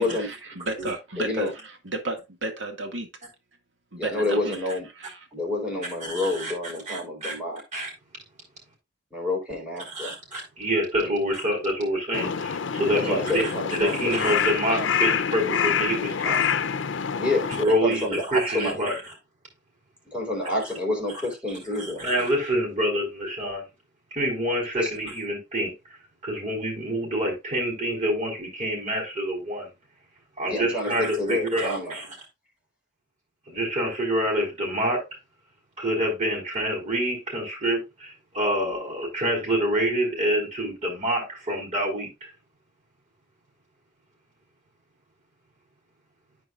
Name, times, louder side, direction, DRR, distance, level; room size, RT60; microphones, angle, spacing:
voice 1, 0.0-1.5 1.9-3.1 3.9-4.6 5.0-5.1, right 2 dB, 90° right, 1.9 m, -32 dB
voice 2, 1.2-1.5 4.0-4.9 5.3-7.6 9.1-10.2 11.0-11.1 12.9-14.2 17.2-18.8 20.1-22.0 24.7-24.9 30.5-32.0, left 2 dB, 5° right, 4.0 m, -28 dB
voice 3, 6.0-6.5 6.9-7.3 7.7-7.9 9.9-16.4 17.6-18.1 18.3-19.0 21.8-23.6 24.1-26.0 26.2-29.7 30.4-32.0 33.5-35.0 35.8-42.3, equal, 35° right, 4.3 m, -27 dB
Crow, 12.1-17.6, left 7 dB, 85° left, 0.6 m, -26 dB
13.5 x 4.8 x 2.4 m
head